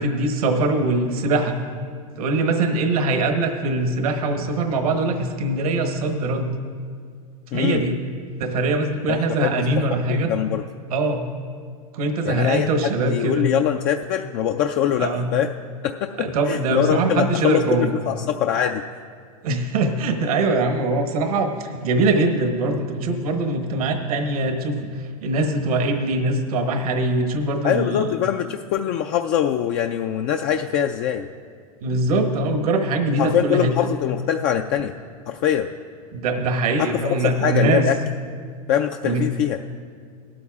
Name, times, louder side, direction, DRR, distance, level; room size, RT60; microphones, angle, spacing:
voice 1, 0.0-1.5 2.2-6.5 7.5-7.9 8.4-10.3 10.9-11.2 11.9-13.5 15.0-15.3 16.2-17.9 19.4-24.9 25.2-28.1 31.8-33.9 36.1-37.9 39.0-39.2, right 2 dB, 75° right, 5 dB, 1.2 m, -22 dB
voice 2, 7.5-7.8 9.1-10.6 12.3-12.7 13.0-15.5 15.8-18.8 27.6-31.3 33.2-34.9 35.3-35.7 36.8-38.0 38.7-39.6, left 10 dB, 50° left, 4 dB, 0.4 m, -23 dB
18.0 x 12.5 x 2.4 m, 2.1 s
hypercardioid pair, 105°, 19 cm